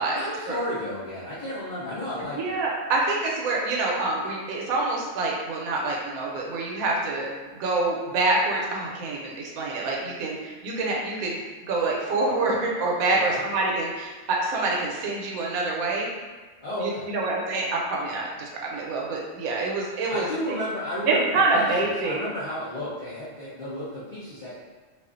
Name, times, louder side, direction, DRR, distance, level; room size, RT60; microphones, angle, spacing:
voice 1, 0.1-2.5 13.1-13.4 16.6-17.1 20.1-24.6, equal, 60° left, -10 dB, 0.5 m, -33 dB
voice 2, 2.3-11.4 11.7-16.1 16.8-20.6 21.0-22.2, right 3 dB, 85° right, -2 dB, 1.0 m, -26 dB
2.4 x 2.3 x 2.4 m, 1.4 s
omnidirectional pair, 1.4 m